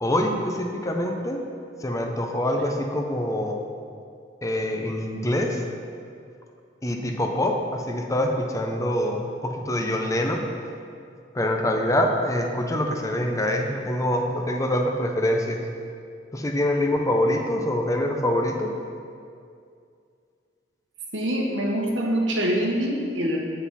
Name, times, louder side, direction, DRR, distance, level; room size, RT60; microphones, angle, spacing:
voice 1, 0.0-1.4 1.8-3.6 4.4-5.6 6.8-10.4 11.3-15.6 16.3-18.7, left 1 dB, 15° left, 2 dB, 0.6 m, -25 dB
voice 2, 21.1-23.4, equal, 80° right, -1 dB, 1.3 m, -24 dB
8.2 x 7.6 x 4.1 m, 2.4 s
head